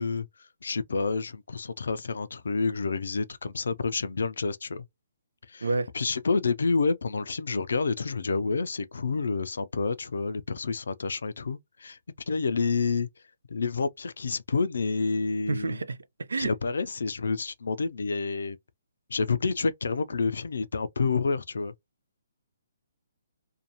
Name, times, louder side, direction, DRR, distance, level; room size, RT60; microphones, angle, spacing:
voice 1, 0.0-4.9 5.5-5.7 5.9-12.0 12.3-13.1 13.5-15.8 16.4-18.6 19.1-21.7, left 4 dB, 70° left, 0.4 m, -29 dB
voice 2, 15.5-16.5, right 3 dB, 80° right, 0.4 m, -29 dB
2.6 x 2.2 x 2.8 m
figure-of-eight pair, 140°, 0 cm